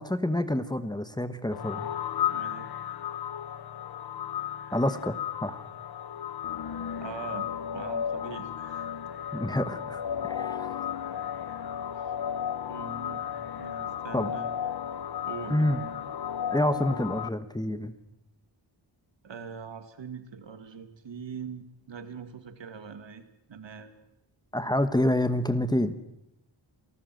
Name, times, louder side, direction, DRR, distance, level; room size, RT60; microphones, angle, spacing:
voice 1, 0.0-1.9 4.7-5.6 9.3-10.0 10.3-10.9 14.1-14.3 15.5-15.8 16.5-17.9 24.5-26.0, left 1 dB, 10° left, 11 dB, 1.2 m, -28 dB
sound 1, 1.5-17.3, left 9 dB, 55° left, 0.8 m, -34 dB
voice 2, 2.3-2.7 7.0-7.5 7.7-8.9 12.0-12.1 12.7-13.2 13.6-14.5 15.3-15.6 19.2-24.0, right 6 dB, 75° right, 10 dB, 2.3 m, -42 dB
29.0 x 18.0 x 7.8 m, 0.84 s
wide cardioid pair, 155°, 45 cm